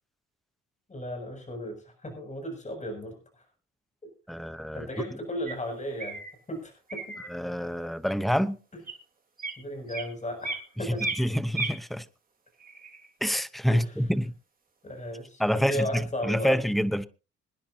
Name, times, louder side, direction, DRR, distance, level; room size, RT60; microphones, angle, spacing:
voice 1, 0.9-3.2 4.7-6.2 6.5-7.2 8.7-8.8 9.6-11.1 13.7-14.0 14.8-16.6, equal, 25° left, 7.0 m, -35 dB
voice 2, 4.3-4.9 7.3-8.6 11.2-12.0 13.2-14.3 15.4-17.1, equal, ahead, 0.9 m, -27 dB
sound 1, 5.5-5.6 6.0-6.3 6.9-7.3 8.0-8.2 8.8-8.9 9.4-9.6 9.9-10.7 11.0-11.8 12.6-13.3, right 3 dB, 30° right, 3.3 m, -35 dB
26.0 x 10.0 x 2.8 m
cardioid pair, 90°, 30 cm